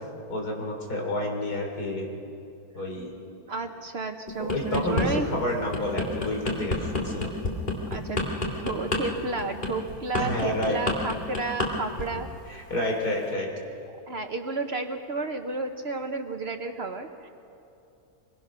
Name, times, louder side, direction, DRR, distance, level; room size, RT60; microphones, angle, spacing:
voice 1, 0.3-2.1 2.7-3.1 4.4-7.3 10.2-10.8 12.5-13.5, left 1 dB, 75° left, 0 dB, 4.0 m, -29 dB
voice 2, 3.5-5.3 7.0-7.1 7.9-12.3 14.1-17.3, right 3 dB, 45° right, 6 dB, 1.0 m, -32 dB
sound 1, 4.3-5.1 5.5-11.7 12.0-12.3, left 2 dB, 30° left, 2.6 m, -28 dB
24.5 x 21.5 x 6.1 m, 2.6 s
omnidirectional pair, 1.7 m